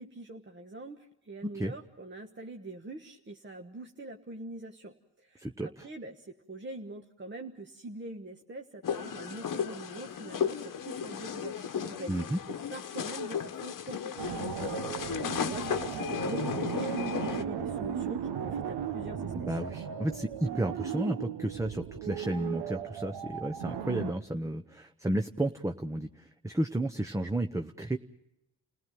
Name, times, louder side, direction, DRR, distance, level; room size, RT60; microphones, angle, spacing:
voice 1, 0.0-12.3 12.7-19.5, right 2 dB, 30° right, 3 dB, 1.4 m, -44 dB
voice 2, 1.4-1.7 5.4-5.9 12.1-12.4 19.3-28.0, right 1 dB, 10° right, 5 dB, 0.8 m, -32 dB
sound 1, 8.8-17.4, left 7 dB, 55° left, 1.2 m, -35 dB
sound 2, 14.2-24.1, right 8 dB, 80° right, 1.2 m, -36 dB
29.5 x 17.0 x 7.6 m, 0.89 s
cardioid pair, 75°, 39 cm